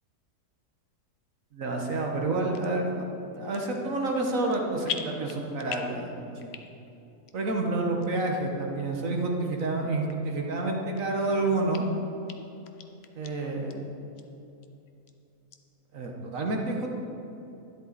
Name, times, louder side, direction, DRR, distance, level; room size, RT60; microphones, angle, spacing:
voice 1, 1.5-2.9 3.4-6.5 7.3-11.8 13.2-13.9 15.9-16.9, right 2 dB, 55° right, 1 dB, 1.6 m, -29 dB
sound 1, 2.5-2.7 3.3-3.8 4.1-4.6 4.8-6.0 6.4-6.9 7.3-7.4 8.0-8.1 8.8-8.9 9.6-9.7 10.1-10.2 10.7-11.3 11.7-11.8 12.3-12.4 12.6-13.3 13.7-13.8 14.2-14.3 14.6-15.1 15.5-15.6, left 7 dB, 55° left, 0.7 m, -39 dB
12.0 x 10.5 x 4.0 m, 2.8 s
omnidirectional pair, 1.7 m